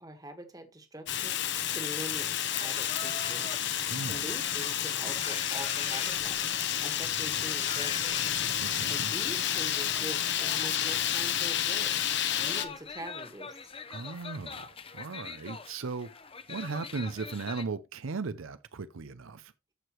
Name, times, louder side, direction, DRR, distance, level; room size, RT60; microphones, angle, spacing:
voice 1, 0.0-2.3 2.6-3.5 4.1-8.2 8.9-13.5, right 1 dB, 15° right, 1.5 m, -44 dB
Fire, 1.1-12.7, left 10 dB, 55° left, 0.9 m, -30 dB
sound 1, 2.5-17.6, left 5 dB, 25° left, 0.7 m, -45 dB
voice 2, 3.9-4.2 8.6-9.1 13.9-16.2 16.5-19.5, right 4 dB, 75° right, 0.6 m, -37 dB
14.0 x 4.8 x 3.1 m
head